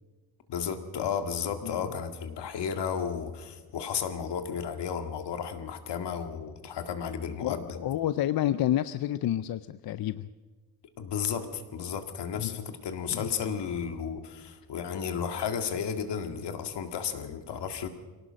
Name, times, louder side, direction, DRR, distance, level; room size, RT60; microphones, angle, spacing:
voice 1, 0.5-7.6 11.0-17.9, left 7 dB, 85° left, 7 dB, 2.1 m, -33 dB
voice 2, 7.4-10.3 12.3-12.6 13.1-13.3, left 12 dB, 60° left, 14 dB, 0.6 m, -29 dB
23.5 x 18.0 x 6.3 m, 1.3 s
wide cardioid pair, 165°, 40 cm